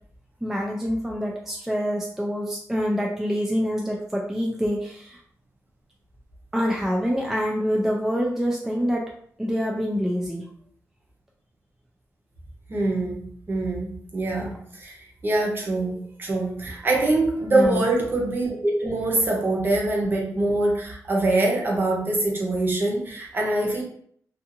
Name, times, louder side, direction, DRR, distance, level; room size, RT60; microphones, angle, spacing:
voice 1, 0.4-5.2 6.5-9.1 9.4-10.4 17.5-17.9, equal, 5° right, -2 dB, 0.3 m, -26 dB
voice 2, 12.7-13.2 13.5-23.8, right 2 dB, 35° right, -1 dB, 0.7 m, -24 dB
2.5 x 2.4 x 2.7 m, 0.62 s
wide cardioid pair, 125°, 6 cm